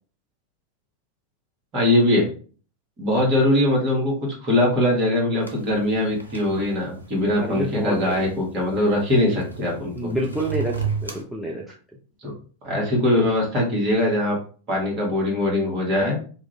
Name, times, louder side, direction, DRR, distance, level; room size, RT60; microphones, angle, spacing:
voice 1, 1.7-2.3 3.0-4.1 4.4-10.1 12.2-12.3 12.6-14.4 14.7-16.2, left 1 dB, 35° right, -2 dB, 1.4 m, -21 dB
sound 1, 5.4-11.2, right 5 dB, 85° right, 0.6 m, -34 dB
voice 2, 7.4-8.3 9.9-11.7, right 1 dB, ahead, -3 dB, 0.5 m, -28 dB
2.7 x 2.4 x 3.2 m, 0.40 s
figure-of-eight pair, 90°, 0 cm